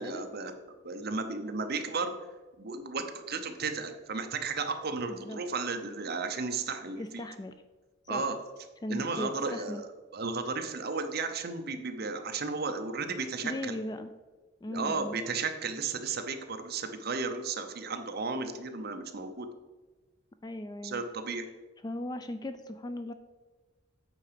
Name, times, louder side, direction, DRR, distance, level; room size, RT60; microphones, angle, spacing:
voice 1, 0.0-2.1 2.6-7.0 8.1-8.4 8.9-9.8 10.1-13.7 14.7-19.5 20.8-21.4, right 4 dB, 50° right, 6 dB, 0.7 m, -34 dB
voice 2, 5.1-5.4 7.0-7.6 8.0-8.3 8.8-9.8 13.4-14.1 14.6-15.2 20.4-21.0 21.8-23.1, left 1 dB, 20° left, 10 dB, 0.3 m, -38 dB
8.4 x 4.8 x 5.1 m, 1.3 s
head